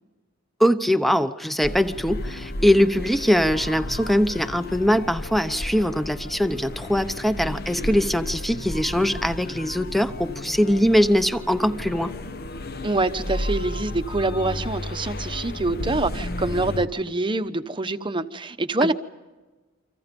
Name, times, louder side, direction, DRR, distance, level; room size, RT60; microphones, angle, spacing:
voice 1, 0.6-12.1, equal, ahead, 0.8 m, -22 dB
sound 1, 1.6-16.9, left 1 dB, 50° left, 1.0 m, -33 dB
voice 2, 12.8-18.9, right 2 dB, 25° right, 1.0 m, -25 dB
29.0 x 25.5 x 5.3 m
head